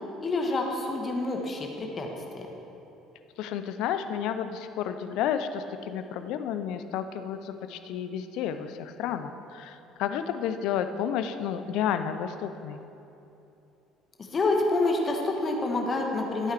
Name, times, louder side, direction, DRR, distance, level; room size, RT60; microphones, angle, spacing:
voice 1, 0.2-2.1 2.3-2.5 14.2-16.5, left 2 dB, 35° left, 1 dB, 1.3 m, -27 dB
voice 2, 3.4-12.8, left 9 dB, 65° left, 9 dB, 0.5 m, -31 dB
13.0 x 8.7 x 3.4 m, 2.9 s
hypercardioid pair, 60°, 0 cm